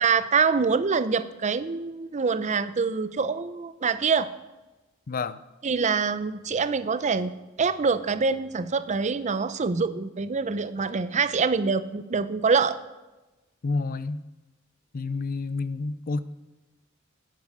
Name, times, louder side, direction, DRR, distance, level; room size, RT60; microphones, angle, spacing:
voice 1, 0.0-4.3 5.6-7.3 7.6-12.8, right 5 dB, 35° right, 13 dB, 0.6 m, -25 dB
voice 2, 5.1-5.4 13.6-14.2 14.9-16.2, left 3 dB, 45° left, 15 dB, 0.5 m, -29 dB
11.5 x 8.5 x 6.4 m, 1.1 s
head